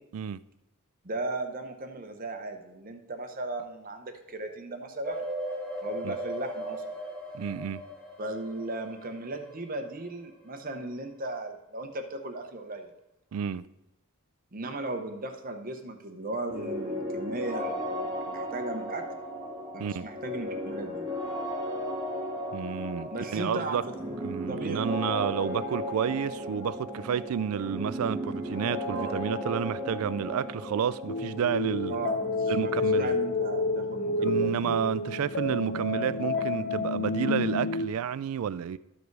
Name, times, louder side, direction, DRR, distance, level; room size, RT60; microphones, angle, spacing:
voice 1, 1.0-5.2 5.8-6.8 8.2-12.9 14.5-19.0 19.7-21.0 23.1-24.2 24.5-25.0 28.9-29.2 31.9-34.8, right 2 dB, 40° right, 0.9 m, -36 dB
sound 1, 5.0-9.7 10.1-10.2, right 1 dB, 5° left, 1.4 m, -37 dB
voice 2, 7.3-7.8 13.3-13.6 19.8-20.0 22.5-23.8 24.2-32.0 32.5-33.2 34.2-38.8, right 7 dB, 75° right, 0.3 m, -30 dB
sound 2, 16.5-34.1, equal, 15° right, 2.2 m, -36 dB
sound 3, 31.1-37.9, left 3 dB, 55° left, 0.5 m, -29 dB
12.5 x 5.0 x 4.7 m
head